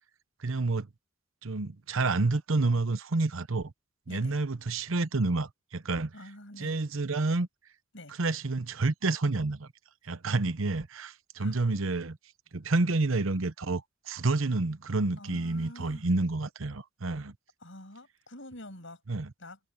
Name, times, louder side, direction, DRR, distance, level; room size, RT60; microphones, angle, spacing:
voice 1, 0.4-0.9 1.4-3.7 4.1-6.1 6.6-7.5 8.2-9.7 10.0-12.2 12.5-17.3 19.1-19.3, right 3 dB, 75° right, 0.9 m, -29 dB
voice 2, 4.1-4.4 6.1-6.8 7.9-8.2 11.4-11.6 15.2-16.1 17.6-19.0 19.4-19.6, left 1 dB, 65° left, 7.0 m, -47 dB
head